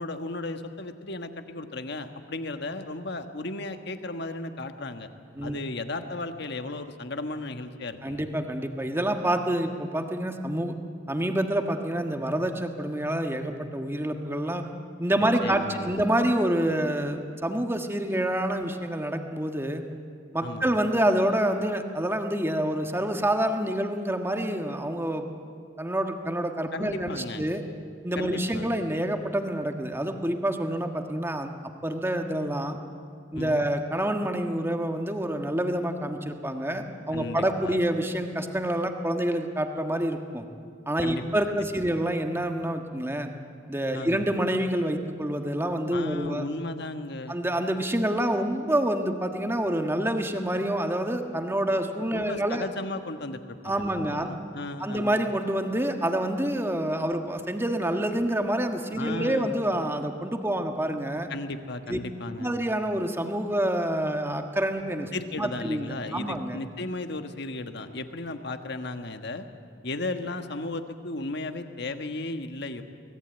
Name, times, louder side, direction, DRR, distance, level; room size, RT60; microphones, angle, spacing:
voice 1, 0.0-5.1 5.4-8.2 15.2-16.0 20.4-20.8 26.7-27.4 28.1-28.7 33.3-33.7 37.1-37.8 41.0-42.0 43.9-44.4 45.9-47.4 52.1-55.2 59.0-59.6 61.3-62.5 65.1-69.4 69.8-72.8, left 2 dB, 60° left, 7 dB, 1.5 m, -35 dB
voice 2, 8.0-10.7 11.1-14.6 15.0-19.8 20.3-25.2 25.8-27.6 28.0-31.5 31.8-32.8 33.3-40.4 40.9-43.3 43.7-46.4 47.3-52.6 53.6-54.3 54.8-61.3 61.9-62.0 62.4-65.1 65.4-66.6, right 1 dB, 15° right, 5 dB, 1.5 m, -27 dB
24.5 x 18.0 x 9.1 m, 2.3 s
head